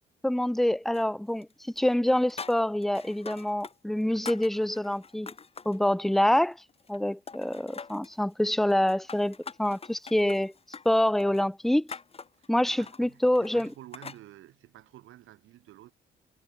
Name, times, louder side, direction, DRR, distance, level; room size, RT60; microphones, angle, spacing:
voice 1, 0.2-5.3 5.7-6.6 6.9-10.5 10.9-11.9 12.5-13.7, left 1 dB, ahead, 0.3 m, -26 dB
sound 1, 0.9-1.5 1.8-3.8 4.0-5.8 6.2-7.0 7.3-8.2 8.7-14.2, left 5 dB, 30° left, 1.7 m, -44 dB
voice 2, 12.3-15.9, right 14 dB, 85° right, 7.6 m, -51 dB
cardioid pair, 90°, 20 cm